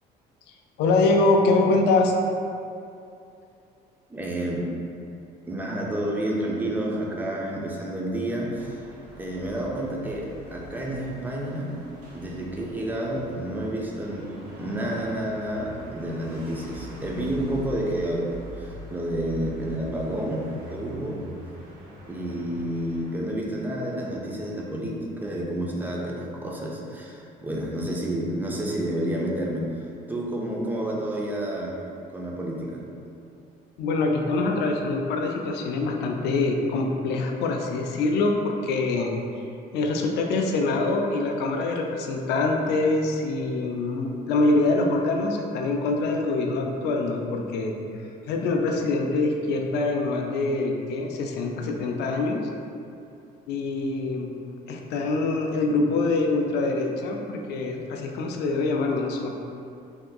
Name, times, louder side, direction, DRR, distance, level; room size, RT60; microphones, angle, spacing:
voice 1, 0.8-2.1 33.8-39.2 39.7-47.8 48.3-52.4 53.5-54.3 54.7-59.3, left 3 dB, 80° left, 2 dB, 0.4 m, -24 dB
voice 2, 4.1-4.7 5.5-8.8 9.2-11.7 12.1-14.3 14.6-21.2 22.1-29.7 30.1-31.8 32.1-32.8, right 1 dB, 10° right, -2 dB, 0.5 m, -30 dB
sound 1, 8.5-23.1, right 1 dB, 90° right, 0.7 m, -43 dB
3.6 x 2.7 x 2.3 m, 2.6 s
cardioid pair, 110°, 17 cm